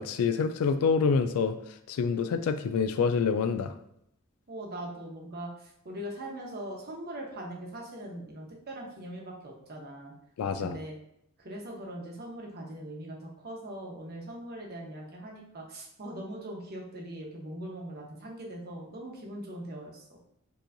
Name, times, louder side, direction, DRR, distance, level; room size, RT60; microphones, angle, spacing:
voice 1, 0.0-1.6 1.9-3.7 10.4-10.8, left 5 dB, 90° left, 9 dB, 0.3 m, -27 dB
voice 2, 4.5-10.1 10.6-10.9 11.4-20.2, right 1 dB, 45° right, -1 dB, 1.0 m, -41 dB
6.8 x 3.0 x 2.6 m, 0.75 s
head